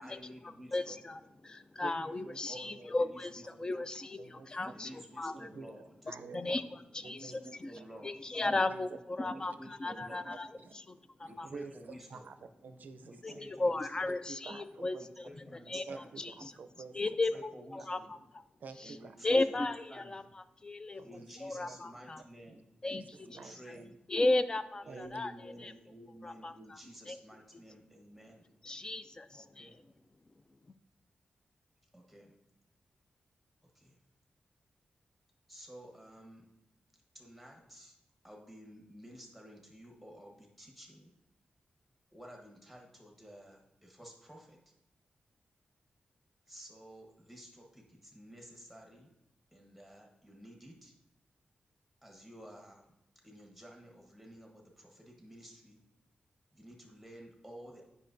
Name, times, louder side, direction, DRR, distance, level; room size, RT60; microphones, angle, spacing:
voice 1, 0.0-1.0 2.5-3.8 4.7-5.9 7.0-8.1 9.2-10.3 11.3-12.3 13.1-13.9 15.2-16.1 17.1-18.1 18.8-20.3 21.0-22.6 23.2-24.0 24.8-28.4 29.3-29.8 31.9-32.3 33.7-34.0 35.5-36.5 37.1-38.0 38.2-41.1 42.1-44.6 46.5-49.1 49.5-50.9 52.0-52.9 53.2-55.8 56.5-57.8, equal, ahead, 1 dB, 1.2 m, -52 dB
voice 2, 0.7-5.4 6.3-6.6 6.9-7.7 8.0-10.5 10.7-11.5 13.2-13.3 13.6-15.3 15.7-15.8 16.2-16.5 16.9-18.4 19.2-21.0 21.4-22.2 22.8-23.0 24.1-25.7 26.2-26.8 27.1-27.2 28.6-29.7, left 2 dB, 25° left, 12 dB, 0.3 m, -35 dB
voice 3, 1.8-2.8 3.4-3.7 4.2-4.5 5.3-5.7 6.0-6.6 7.0-7.9 8.4-8.8 9.2-9.4 10.0-10.1 10.6-10.7 11.3-13.4 14.0-15.1 15.9-17.0 18.6-19.2 20.9-21.2 21.5-21.8 22.5-22.6 22.9-23.9 24.9-25.2 25.5-25.7, right 4 dB, 70° right, 9 dB, 0.5 m, -49 dB
8.8 x 5.4 x 2.6 m, 0.89 s
wide cardioid pair, 120°, 3 cm